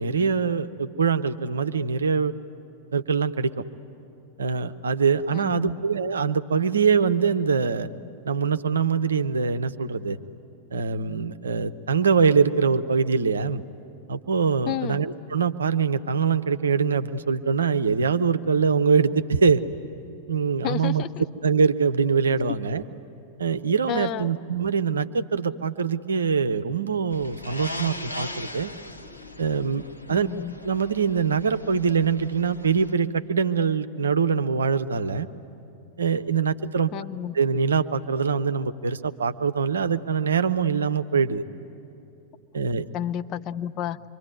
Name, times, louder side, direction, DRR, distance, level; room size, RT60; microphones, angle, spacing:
voice 1, 0.0-2.3 2.9-3.6 4.4-7.9 8.3-10.2 10.7-13.6 14.1-19.6 20.3-21.0 21.4-22.8 23.4-28.7 29.4-30.3 30.6-35.3 36.0-36.9 37.3-41.4 42.5-42.9, right 5 dB, 70° right, 11 dB, 0.7 m, -23 dB
voice 2, 5.3-5.8 14.7-15.0 20.6-21.2 23.9-24.3 30.1-30.5 36.9-37.3 42.9-44.0, left 11 dB, 35° left, 10 dB, 0.6 m, -31 dB
sound 1, 27.1-32.9, left 1 dB, 85° left, 0.9 m, -39 dB
26.0 x 24.0 x 9.5 m, 2.8 s
figure-of-eight pair, 90°, 0 cm